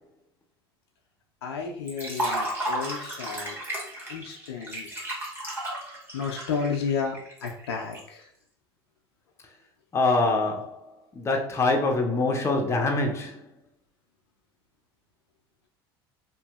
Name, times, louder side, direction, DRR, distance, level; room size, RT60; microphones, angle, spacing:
voice 1, 1.4-3.6 4.1-4.9 6.1-8.3, left 5 dB, 85° left, 0.4 m, -32 dB
Liquid, 1.9-8.0, right 1 dB, 15° right, 1.2 m, -33 dB
voice 2, 9.9-10.8 11.1-13.4, left 3 dB, 20° left, 0.5 m, -24 dB
2.7 x 2.5 x 2.3 m
hypercardioid pair, 80°, 13 cm